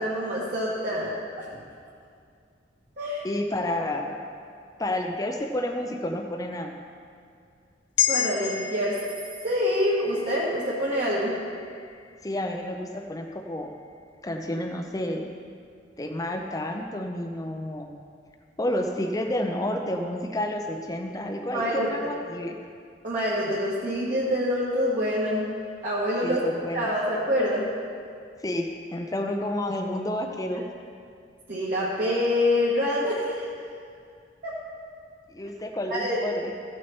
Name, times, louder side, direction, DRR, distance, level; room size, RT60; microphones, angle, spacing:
voice 1, 0.0-1.5 3.0-3.2 8.1-8.9 9.4-11.3 21.5-22.1 23.0-25.4 25.8-26.4 26.7-27.6 31.5-33.4 34.4-34.5 35.9-36.2, left 1 dB, 50° right, -9 dB, 1.6 m, -26 dB
voice 2, 3.2-4.2 4.8-6.7 12.2-13.7 14.2-15.3 16.0-17.9 18.6-22.6 26.2-26.9 28.4-30.6 35.3-36.5, left 1 dB, 20° left, 2 dB, 0.6 m, -30 dB
sound 1, 8.0-12.5 12.9-13.0, left 9 dB, 90° left, 0.6 m, -32 dB
14.5 x 6.3 x 4.4 m, 2.2 s
head